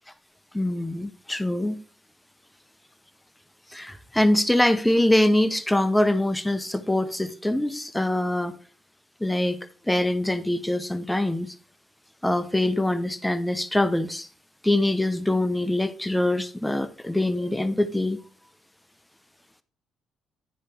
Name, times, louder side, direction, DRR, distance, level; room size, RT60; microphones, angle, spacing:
voice 1, 0.5-1.8 3.7-8.6 9.2-11.5 12.2-14.3 14.6-18.2, left 1 dB, 5° left, 0.7 m, -24 dB
10.5 x 4.9 x 4.4 m
cardioid pair, 80°, 0 cm